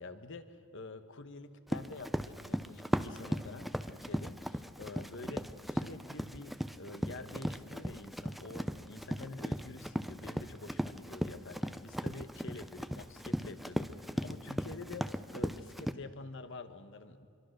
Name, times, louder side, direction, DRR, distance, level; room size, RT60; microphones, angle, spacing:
voice 1, 0.0-17.3, left 3 dB, 55° left, 10 dB, 1.3 m, -47 dB
Run, 1.7-15.9, equal, ahead, 0.5 m, -37 dB
25.5 x 23.0 x 6.6 m, 2.7 s
head